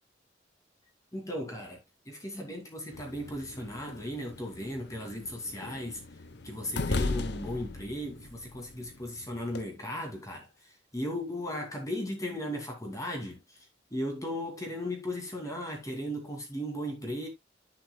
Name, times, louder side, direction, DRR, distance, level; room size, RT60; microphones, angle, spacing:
voice 1, 1.1-1.8 2.1-6.0 6.4-10.5 10.9-13.4 13.9-17.3, left 1 dB, 15° left, 2.5 m, -36 dB
sound 1, 2.9-9.6, left 2 dB, 60° left, 0.9 m, -38 dB
10.5 x 8.0 x 2.2 m
head